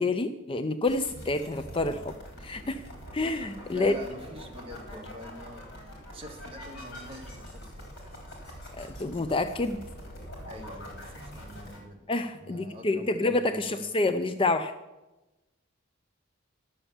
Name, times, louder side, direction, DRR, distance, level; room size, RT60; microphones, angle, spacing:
voice 1, 0.0-2.1 2.4-2.8 3.1-3.9 8.8-9.8 12.1-14.7, left 2 dB, 25° left, 9 dB, 0.4 m, -28 dB
sound 1, 0.9-11.8, equal, 55° left, 4.2 m, -44 dB
voice 2, 3.7-7.9 10.5-12.0 12.4-13.9, left 1 dB, 25° right, 1 dB, 1.6 m, -45 dB
11.5 x 7.1 x 7.1 m, 1.1 s
head